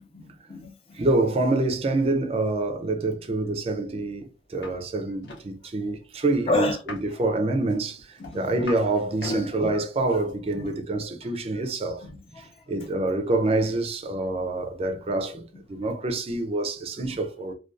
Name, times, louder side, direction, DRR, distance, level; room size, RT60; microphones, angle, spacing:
voice 1, 0.0-1.0 6.5-6.8 8.2-8.4 9.3-9.6 10.5-10.7 12.0-12.5 17.0-17.1, left 2 dB, 30° left, 0.5 m, -31 dB
voice 2, 0.9-12.1 12.4-17.5, right 2 dB, 35° right, 0.3 m, -26 dB
sound 1, 4.6-4.8 5.0-5.4 6.7-7.2 7.7-8.9 9.1-9.5 10.2-10.3, left 1 dB, 80° left, 1.0 m, -37 dB
2.3 x 2.2 x 2.5 m
head